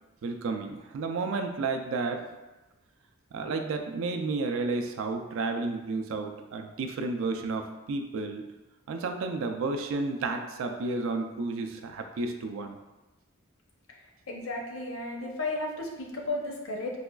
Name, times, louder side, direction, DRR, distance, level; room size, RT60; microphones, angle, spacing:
voice 1, 0.2-2.2 3.3-8.4 8.9-12.8, right 3 dB, 65° right, 5 dB, 0.3 m, -32 dB
voice 2, 14.3-17.0, left 2 dB, 70° left, 0 dB, 0.6 m, -34 dB
4.7 x 2.3 x 2.2 m, 1.1 s
head